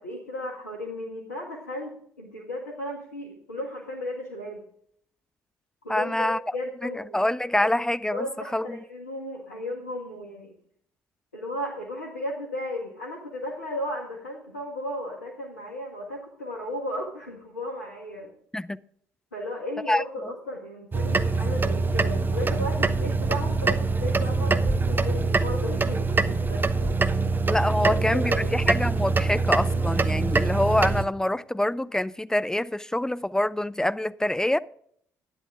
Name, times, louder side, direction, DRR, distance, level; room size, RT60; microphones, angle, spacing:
voice 1, 0.0-4.6 5.8-7.2 7.6-7.7 8.1-10.5 11.3-18.3 19.3-27.0 27.8-28.5, left 1 dB, 90° left, 1.6 m, -35 dB
voice 2, 5.9-6.4 6.8-8.3 8.5-8.8 18.5-18.8 19.9-20.0 27.5-34.6, left 1 dB, 10° left, 0.5 m, -26 dB
sound 1, 20.9-31.1, right 3 dB, 25° right, 1.0 m, -24 dB
12.5 x 10.0 x 3.6 m
figure-of-eight pair, 50°, 8 cm